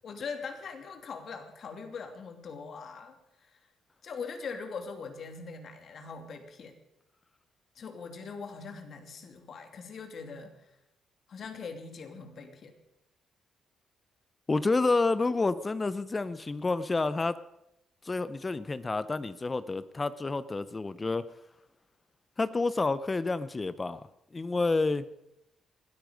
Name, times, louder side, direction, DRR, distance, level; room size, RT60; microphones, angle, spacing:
voice 1, 0.0-3.6 4.0-6.7 7.7-10.7 11.3-12.7, left 5 dB, 55° left, 5 dB, 2.8 m, -42 dB
voice 2, 14.5-17.4 18.0-21.2 22.4-24.0 24.3-25.1, left 3 dB, 25° left, 14 dB, 0.7 m, -29 dB
20.0 x 13.5 x 5.2 m, 0.84 s
cardioid pair, 90°, 0 cm